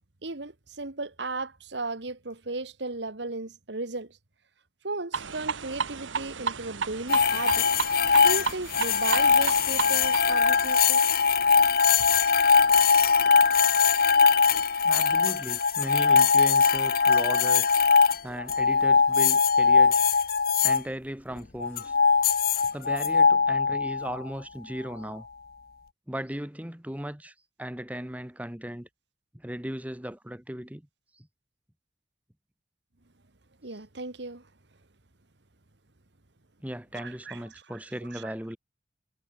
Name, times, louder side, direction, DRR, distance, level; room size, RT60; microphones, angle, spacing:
voice 1, 0.2-4.2 4.8-7.7 8.2-11.0 33.6-34.4 36.9-37.4 37.7-37.8 38.1-38.3, right 3 dB, 65° right, 1.7 m, -35 dB
sound 1, 5.1-10.5, right 5 dB, 85° right, 1.2 m, -33 dB
sound 2, 7.1-20.8 21.6-24.2, left 5 dB, 50° left, 0.8 m, -21 dB
voice 2, 14.8-17.7 18.2-20.1 20.6-21.9 22.7-25.3 26.1-28.9 29.3-30.9 31.2-31.3 36.6-38.6, equal, 10° right, 1.3 m, -37 dB
head